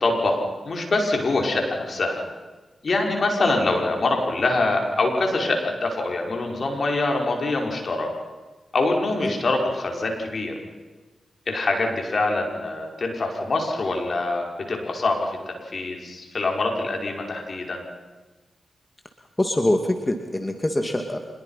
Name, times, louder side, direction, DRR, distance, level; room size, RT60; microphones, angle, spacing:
voice 1, 0.0-2.2 2.8-8.1 8.7-10.5 11.5-17.9, left 2 dB, 60° left, 2 dB, 5.4 m, -24 dB
voice 2, 19.4-21.2, left 1 dB, 25° left, 4 dB, 2.5 m, -24 dB
26.0 x 21.0 x 5.8 m, 1.3 s
supercardioid pair, 45°, 0 cm